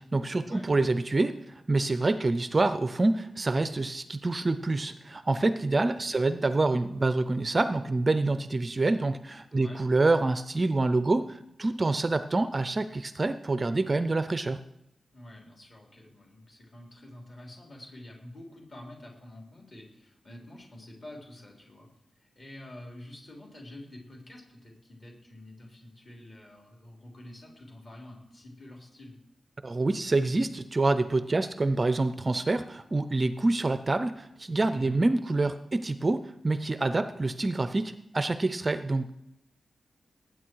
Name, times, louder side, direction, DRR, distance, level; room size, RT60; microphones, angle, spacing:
voice 1, 0.0-14.6 29.6-39.1, right 2 dB, 25° right, 11 dB, 0.5 m, -27 dB
voice 2, 9.5-9.8 15.1-21.9 22.2-29.2 34.7-35.0, left 1 dB, 30° left, 0 dB, 3.6 m, -48 dB
19.0 x 9.0 x 4.7 m, 0.83 s
wide cardioid pair, 150°, 0 cm